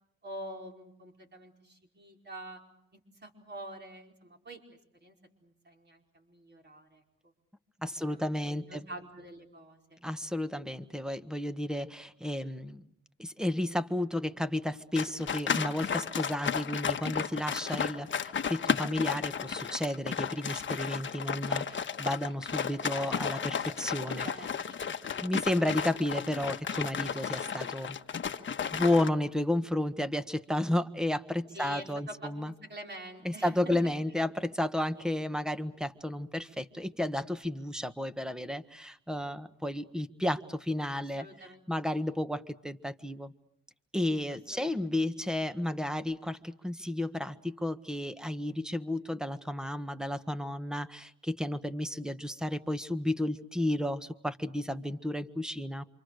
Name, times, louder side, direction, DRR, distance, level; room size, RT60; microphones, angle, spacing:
voice 1, 0.2-2.6 2.9-4.6 4.9-7.0 8.0-10.0 24.2-24.8 25.1-25.3 31.5-34.2 35.0-35.2 41.0-41.6 41.9-42.0 44.3-45.2, right 1 dB, 35° right, 2 dB, 4.9 m, -47 dB
voice 2, 7.8-8.9 10.0-12.8 13.2-24.3 25.2-28.0 28.7-32.5 33.2-41.3 41.7-43.3 43.9-55.8, left 1 dB, ahead, 11 dB, 1.5 m, -32 dB
sound 1, 15.0-29.1, left 7 dB, 40° left, 1.4 m, -33 dB
28.0 x 26.0 x 6.6 m, 0.73 s
cardioid pair, 90°, 30 cm